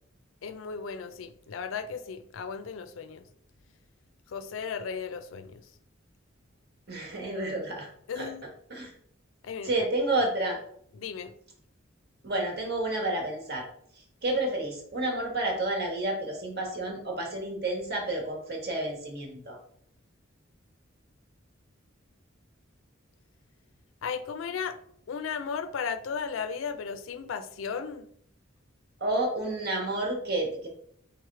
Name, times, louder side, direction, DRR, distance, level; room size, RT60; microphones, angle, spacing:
voice 1, 0.4-3.2 4.3-5.6 8.1-8.4 9.4-9.9 10.9-11.3 24.0-24.8 25.1-28.1, left 6 dB, 75° left, 0.4 m, -35 dB
voice 2, 6.9-7.9 8.1-8.3 8.7-8.9 9.6-10.6 12.2-13.7 14.2-19.6 29.0-30.7, right 2 dB, 55° right, 1.3 m, -30 dB
3.5 x 3.1 x 4.7 m
head